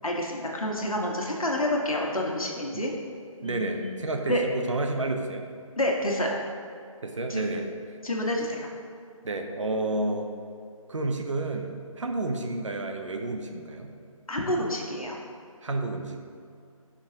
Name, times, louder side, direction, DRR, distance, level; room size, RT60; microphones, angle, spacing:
voice 1, 0.0-2.9 3.4-4.0 4.3-4.4 5.8-6.4 7.3-7.4 8.0-8.7 14.3-15.2, left 1 dB, 75° left, -1 dB, 1.6 m, -28 dB
voice 2, 3.4-5.5 7.0-7.7 9.2-10.3 10.9-13.9 15.6-16.2, right 2 dB, 60° right, 4 dB, 1.0 m, -30 dB
15.0 x 5.7 x 2.9 m, 2.4 s
figure-of-eight pair, 150°, 18 cm